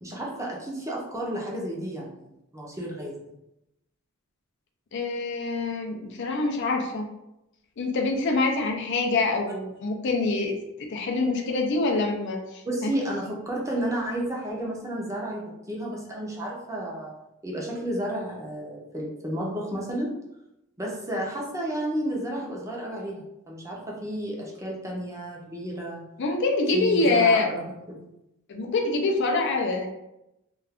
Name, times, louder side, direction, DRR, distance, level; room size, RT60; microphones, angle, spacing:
voice 1, 0.0-3.2 12.7-17.1 17.4-20.1 20.8-26.0 26.7-27.6 27.9-28.0, right 1 dB, 15° right, -3 dB, 0.5 m, -32 dB
voice 2, 4.9-7.1 7.8-12.9 26.2-27.5 28.5-29.9, left 3 dB, 55° left, 2 dB, 0.4 m, -25 dB
2.4 x 2.3 x 3.4 m, 0.88 s
head